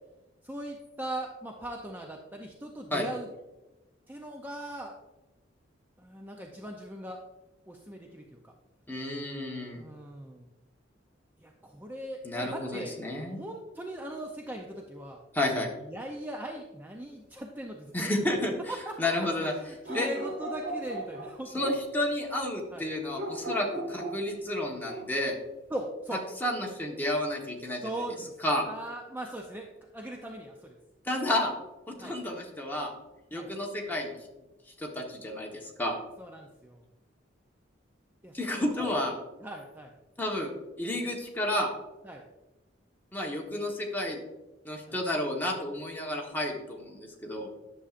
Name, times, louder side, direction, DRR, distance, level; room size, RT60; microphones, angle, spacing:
voice 1, 0.4-3.3 4.1-4.9 6.0-7.2 7.7-8.5 9.7-10.5 11.4-15.2 15.8-18.1 18.7-21.6 22.7-22.9 25.7-26.2 27.8-28.4 28.6-30.8 32.0-32.2 33.3-33.5 36.2-36.8 38.2-38.4 38.7-39.0 39.4-39.9 42.0-42.2 44.9-45.0, right 1 dB, 10° right, 1 dB, 0.5 m, -40 dB
voice 2, 8.9-9.8 12.2-13.4 15.3-15.7 17.9-18.6 19.0-19.5 19.9-20.1 21.5-25.4 26.4-27.8 28.4-28.7 31.0-31.5 31.9-32.9 33.3-34.2 34.8-36.0 38.3-39.1 40.2-40.5 40.8-41.7 43.1-44.2 44.6-47.5, left 1 dB, 10° left, -1 dB, 1.2 m, -31 dB
sound 1, 19.8-21.9 23.1-24.6 24.8-25.1, right 1 dB, 60° right, 1.7 m, -37 dB
10.0 x 7.0 x 2.5 m, 1.1 s
head